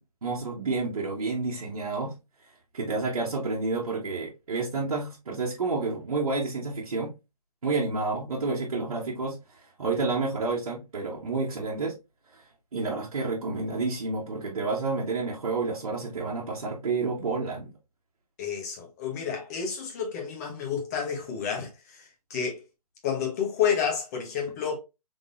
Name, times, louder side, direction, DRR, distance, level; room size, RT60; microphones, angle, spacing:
voice 1, 0.2-2.1 2.7-7.1 7.6-9.4 9.8-11.9 12.7-17.7, right 3 dB, 60° right, 1.2 m, -29 dB
voice 2, 18.4-22.0 22.3-22.6 23.0-24.8, left 7 dB, 25° left, 1.1 m, -30 dB
3.7 x 3.6 x 2.5 m
figure-of-eight pair, 150°, 19 cm